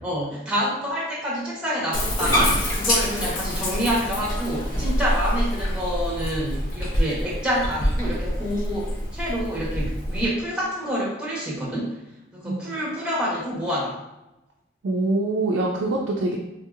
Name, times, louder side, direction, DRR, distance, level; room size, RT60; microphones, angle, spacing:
voice 1, 0.0-12.0 12.3-14.0, equal, 5° right, -6 dB, 0.9 m, -27 dB
Bathtub (filling or washing), 1.9-10.3, equal, 85° left, 0.9 m, -26 dB
voice 2, 14.8-16.4, right 2 dB, 85° right, -2 dB, 0.4 m, -24 dB
3.7 x 2.7 x 2.4 m, 0.96 s
head